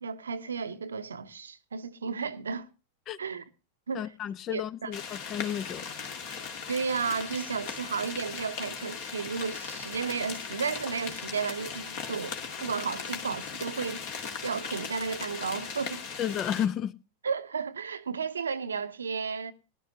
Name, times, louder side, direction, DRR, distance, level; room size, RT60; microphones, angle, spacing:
voice 1, 0.0-2.7 3.2-3.4 3.9-4.1 4.5-4.9 6.7-14.1 14.4-16.0 17.2-19.5, right 5 dB, 70° right, 0.8 m, -33 dB
voice 2, 3.9-5.9 16.2-16.9, left 10 dB, 30° left, 0.6 m, -32 dB
sound 1, 4.9-16.7, left 6 dB, 50° left, 2.2 m, -38 dB
19.5 x 11.5 x 2.8 m
figure-of-eight pair, 90°, 0 cm